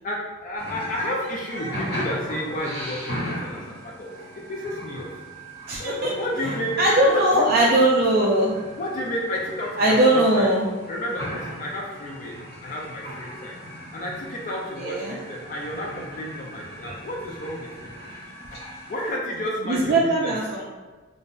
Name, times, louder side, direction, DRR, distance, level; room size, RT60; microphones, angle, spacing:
voice 1, 0.0-4.1 4.5-5.1 5.8-7.7 8.8-10.5 10.9-13.6 13.9-17.7 18.9-20.3, left 1 dB, 40° left, -2 dB, 0.4 m, -31 dB
sound 1, 0.6-19.1, equal, 55° left, 1.4 m, -37 dB
voice 2, 5.7-6.1 6.8-8.5 9.8-10.6 14.8-15.2 19.7-20.6, right 1 dB, 45° right, -4 dB, 0.3 m, -20 dB
2.5 x 2.0 x 3.7 m, 1.3 s
head